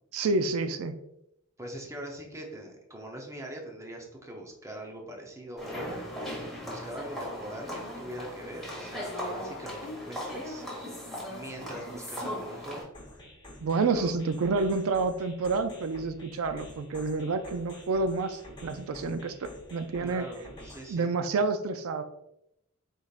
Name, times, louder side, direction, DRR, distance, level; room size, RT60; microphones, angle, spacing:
voice 1, 0.1-1.0 13.6-20.2 20.9-22.0, right 3 dB, 90° right, 9 dB, 0.4 m, -29 dB
voice 2, 1.6-6.4 6.6-10.9 11.3-12.9 13.9-14.1 20.0-21.1, right 1 dB, 15° right, 1 dB, 0.7 m, -42 dB
sound 1, 5.6-12.8, left 1 dB, ahead, 1.4 m, -38 dB
sound 2, 12.9-20.9, left 1 dB, 25° left, 1.1 m, -49 dB
5.0 x 4.0 x 2.4 m, 0.80 s
head